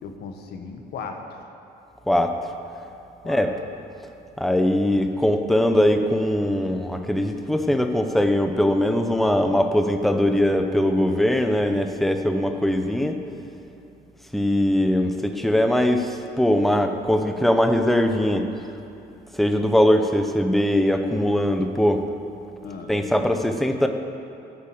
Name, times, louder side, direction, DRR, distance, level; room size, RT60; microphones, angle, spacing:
voice 1, 0.0-1.5 3.2-3.5 22.6-23.0, left 5 dB, 70° left, 4 dB, 1.4 m, -37 dB
voice 2, 4.4-13.2 14.3-18.5 19.3-22.0 22.9-23.9, left 1 dB, ahead, 6 dB, 0.7 m, -21 dB
13.0 x 8.5 x 7.7 m, 2.8 s
cardioid pair, 160°, 17 cm